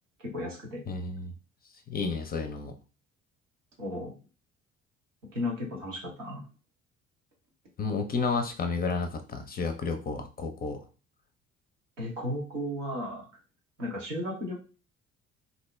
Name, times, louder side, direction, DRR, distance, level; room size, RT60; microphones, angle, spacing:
voice 1, 0.2-0.8 3.8-4.1 5.3-6.5 12.0-13.3 13.8-14.6, left 1 dB, 85° right, -2 dB, 0.9 m, -34 dB
voice 2, 0.9-1.3 1.9-2.7 7.8-10.8, left 4 dB, 25° left, 6 dB, 0.5 m, -31 dB
2.7 x 2.1 x 3.1 m, 0.34 s
figure-of-eight pair, 50°, 36 cm